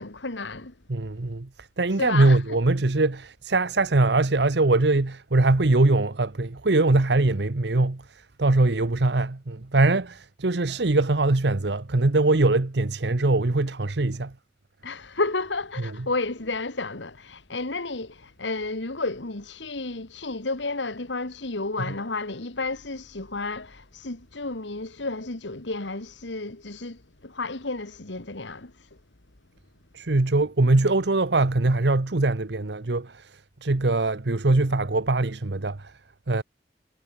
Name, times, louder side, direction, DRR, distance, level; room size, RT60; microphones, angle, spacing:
voice 1, 0.0-0.7 2.0-2.6 14.8-28.9, left 3 dB, 90° left, 2.1 m, -32 dB
voice 2, 0.9-1.5 1.8-8.0 8.4-14.3 29.9-33.3 33.6-35.9 36.3-36.4, right 2 dB, 75° right, 1.0 m, -22 dB
head